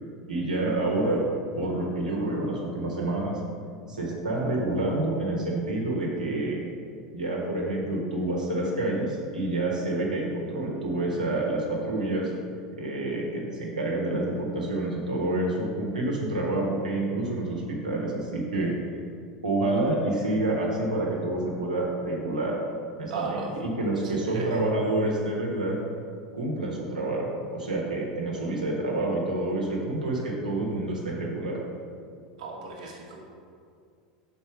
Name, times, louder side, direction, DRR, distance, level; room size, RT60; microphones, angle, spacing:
voice 1, 0.3-1.2 1.5-3.4 3.9-6.6 7.1-12.3 12.8-18.7 19.4-22.6 23.0-25.8 26.3-31.6, right 2 dB, 80° right, -4 dB, 1.1 m, -28 dB
voice 2, 23.1-23.5 24.0-24.5 32.4-33.2, right 4 dB, 60° right, -3 dB, 1.1 m, -36 dB
5.5 x 4.1 x 6.1 m, 2.2 s
figure-of-eight pair, 80°, 4 cm